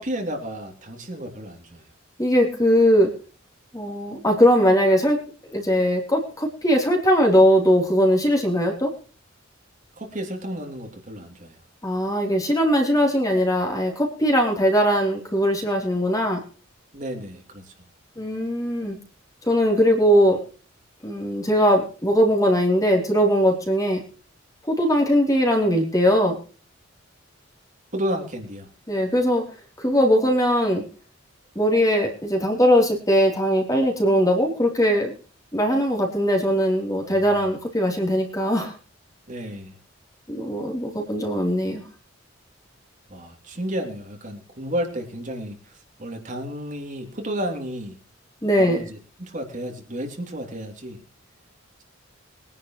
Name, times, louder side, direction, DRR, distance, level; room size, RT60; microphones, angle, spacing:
voice 1, 0.0-1.8 10.0-11.6 16.9-17.7 27.9-28.7 37.1-37.5 39.3-39.8 43.1-48.0 48.6-51.0, equal, 40° right, 2 dB, 3.1 m, -32 dB
voice 2, 2.2-3.1 3.7-5.2 5.5-8.9 11.8-16.4 18.2-19.0 19.5-20.4 21.0-24.0 24.7-26.4 28.9-29.4 29.8-30.8 31.5-35.1 35.5-38.7 40.3-41.8 48.4-48.8, equal, 15° left, 1 dB, 3.5 m, -20 dB
22.5 x 11.0 x 3.1 m, 0.39 s
head